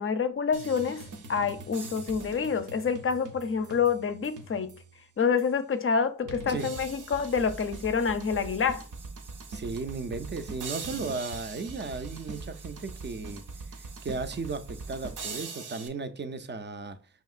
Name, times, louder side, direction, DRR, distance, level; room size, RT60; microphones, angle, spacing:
voice 1, 0.0-4.7 5.2-8.8, left 6 dB, 45° left, 0.5 m, -27 dB
sound 1, 0.5-4.9 5.4-5.5 6.3-15.9, right 3 dB, 75° right, 0.6 m, -42 dB
voice 2, 6.2-6.7 9.5-13.4 13.8-17.0, right 4 dB, 35° right, 0.4 m, -35 dB
5.6 x 2.8 x 2.4 m
wide cardioid pair, 75°, 31 cm